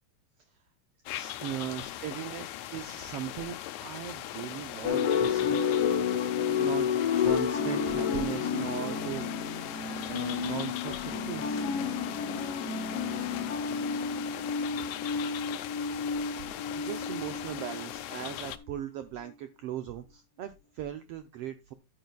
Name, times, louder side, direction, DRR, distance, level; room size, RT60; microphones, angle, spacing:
sound 1, 1.1-18.6, left 13 dB, 80° left, 1.9 m, -40 dB
voice 1, 1.1-5.6 6.6-6.9 7.2-9.2 10.1-11.6 16.4-16.5 16.8-21.7, right 10 dB, 80° right, 9 dB, 1.4 m, -38 dB
sound 2, 4.8-18.2, left 7 dB, 60° left, 2.0 m, -30 dB
12.0 x 9.3 x 2.3 m, 0.23 s
omnidirectional pair, 3.4 m